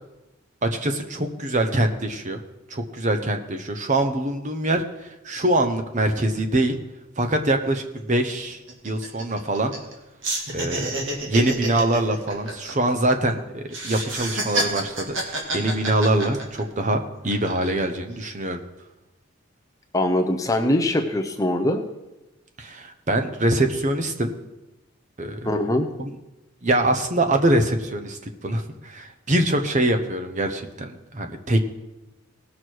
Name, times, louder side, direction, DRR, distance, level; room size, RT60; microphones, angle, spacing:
voice 1, 0.6-2.4 2.7-6.8 7.2-8.6 8.8-9.7 10.5-18.6 22.6-24.3 25.2-25.5 26.0-26.1 26.6-31.6, right 1 dB, 35° right, 5 dB, 0.9 m, -24 dB
sound 1, 7.4-7.5 7.8-8.0 8.3-9.9 10.2-13.3 13.7-16.8 17.3-17.8, right 2 dB, 60° right, 2.1 m, -29 dB
voice 2, 19.9-21.8 25.4-25.9, left 1 dB, 15° left, 4 dB, 0.7 m, -22 dB
18.5 x 6.4 x 4.6 m, 0.99 s
head